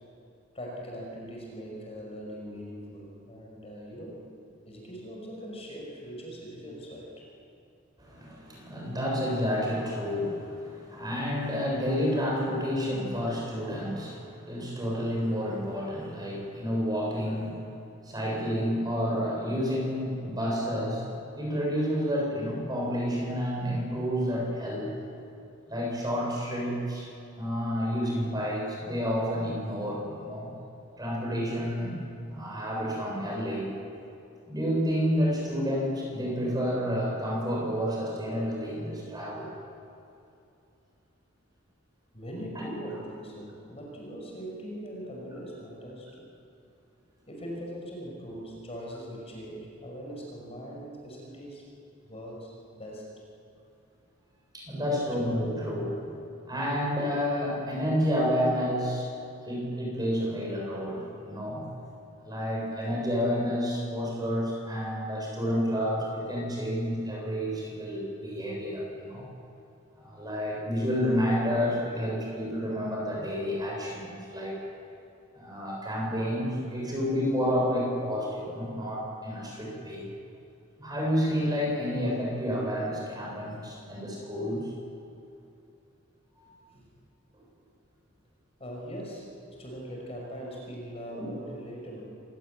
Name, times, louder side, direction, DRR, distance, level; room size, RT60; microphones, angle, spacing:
voice 1, 0.5-4.2 4.6-7.3 42.1-46.3 47.3-51.6 52.0-53.0 54.9-55.0 86.7-86.9 88.6-89.3 89.6-92.0, equal, 30° left, -2 dB, 5.9 m, -41 dB
voice 2, 8.0-17.6 18.0-21.1 21.4-24.9 25.7-27.1 27.4-30.5 31.0-33.7 34.5-39.5 42.6-42.7 54.5-56.2 56.5-59.1 59.4-61.6 62.2-69.3 69.9-74.6 75.3-80.1 80.8-84.7 86.4-86.5 91.1-91.2, equal, 20° right, -2 dB, 7.6 m, -30 dB
27.0 x 18.0 x 9.4 m, 2.7 s
head